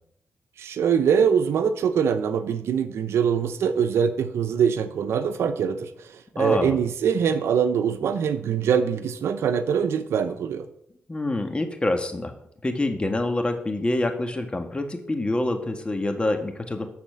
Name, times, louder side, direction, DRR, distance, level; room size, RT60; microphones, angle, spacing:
voice 1, 0.6-10.6, right 7 dB, 85° right, 10 dB, 0.8 m, -23 dB
voice 2, 6.3-6.8 11.1-12.3 12.6-16.8, left 2 dB, 25° left, 5 dB, 1.6 m, -26 dB
12.0 x 4.3 x 7.4 m, 0.72 s
cardioid pair, 80°, 4 cm